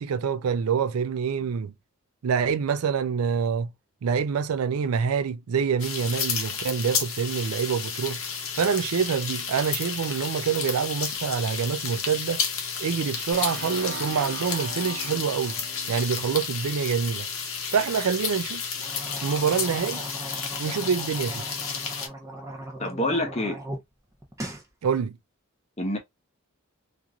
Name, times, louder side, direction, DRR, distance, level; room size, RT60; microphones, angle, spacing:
voice 1, 0.0-1.7 2.2-3.7 4.0-8.2 8.5-12.4 12.8-15.6 15.9-17.3 17.7-18.6 19.2-20.0 20.6-21.4 24.8-25.2, right 6 dB, 85° right, 0.4 m, -26 dB
sound 1, 5.8-22.1, left 6 dB, 70° left, 0.8 m, -32 dB
sound 2, 13.3-17.1, right 3 dB, 55° right, 1.0 m, -40 dB
sound 3, 18.7-23.8 24.1-24.7, right 1 dB, 15° right, 0.6 m, -38 dB
voice 2, 22.8-23.6 25.8-26.0, left 1 dB, 30° left, 0.8 m, -27 dB
2.9 x 2.5 x 2.3 m
head